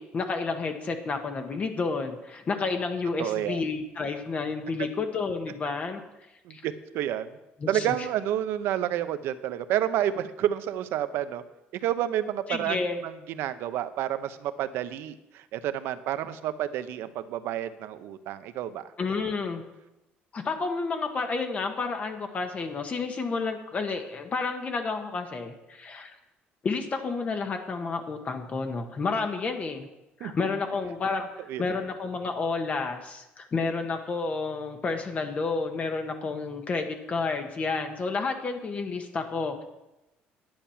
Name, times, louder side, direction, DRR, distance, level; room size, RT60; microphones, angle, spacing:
voice 1, 0.0-6.0 6.5-6.6 7.6-7.9 12.5-13.0 19.0-19.6 20.3-26.2 26.6-29.9 30.2-31.3 31.6-39.6, left 4 dB, 35° left, 5 dB, 1.2 m, -30 dB
voice 2, 3.2-3.6 6.4-7.4 7.7-11.4 11.7-18.9 30.2-30.3 31.5-31.8, right 11 dB, 75° right, 11 dB, 0.8 m, -30 dB
10.5 x 8.8 x 5.7 m, 0.96 s
cardioid pair, 115°, 4 cm